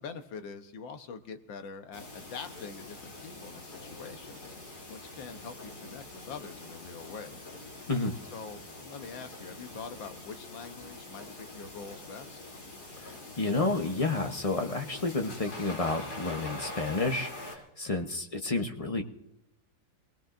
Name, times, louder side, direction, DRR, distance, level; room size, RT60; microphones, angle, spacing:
voice 1, 0.0-4.5 4.9-7.4 8.3-12.4, left 5 dB, 85° left, 7 dB, 1.7 m, -44 dB
sound 1, 1.9-17.5, left 2 dB, 55° left, 3.5 m, -45 dB
voice 2, 13.0-19.0, left 3 dB, 30° left, 4 dB, 0.7 m, -31 dB
27.0 x 19.0 x 2.6 m, 0.85 s
omnidirectional pair, 2.0 m